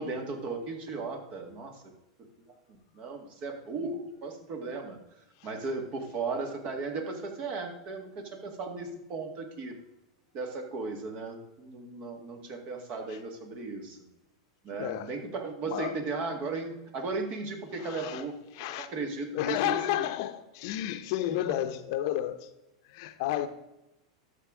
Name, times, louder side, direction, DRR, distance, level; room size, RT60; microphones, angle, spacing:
voice 1, 0.0-1.8 2.7-5.0 5.4-9.7 10.3-14.0 14.6-18.4 18.8-20.1, right 3 dB, 45° right, 2.1 m, -36 dB
voice 2, 14.7-15.1 15.7-15.9 17.8-18.2 18.5-18.9 19.3-22.5 22.9-23.5, left 12 dB, 60° left, 0.8 m, -31 dB
12.5 x 6.6 x 3.8 m
hypercardioid pair, 110°, 3 cm